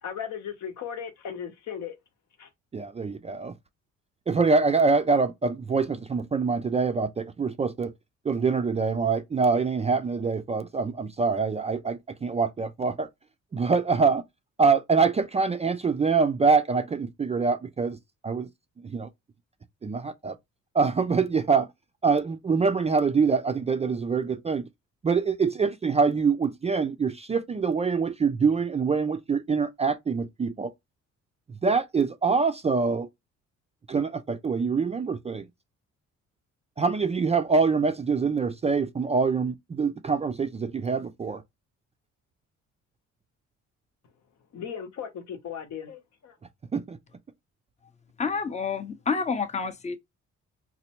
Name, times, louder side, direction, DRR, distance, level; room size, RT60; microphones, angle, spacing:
voice 1, 0.0-1.9 2.4-2.5 44.5-46.4, left 8 dB, 65° left, 0.9 m, -37 dB
voice 2, 2.7-3.5 4.3-7.9 8.3-13.1 13.5-14.2 14.6-18.0 18.2-18.5 18.8-19.1 19.8-20.4 20.7-21.7 22.0-24.6 25.0-30.7 31.6-33.1 33.9-35.5 36.8-41.4 46.7-47.0, right 4 dB, 20° right, 0.3 m, -25 dB
voice 3, 48.2-50.0, left 5 dB, 25° left, 0.6 m, -28 dB
4.1 x 2.1 x 2.8 m
cardioid pair, 90°, 30 cm